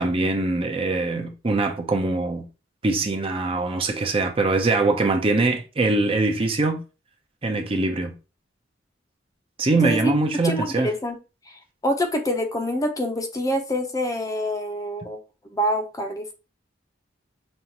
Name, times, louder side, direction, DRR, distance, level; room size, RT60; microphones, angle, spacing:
voice 1, 0.0-2.5 2.8-6.8 7.4-8.2 9.6-10.9, right 2 dB, 30° right, 0.6 m, -23 dB
voice 2, 10.4-11.2 11.5-15.2 15.5-16.3, equal, 20° left, 0.6 m, -26 dB
5.4 x 2.4 x 2.8 m
head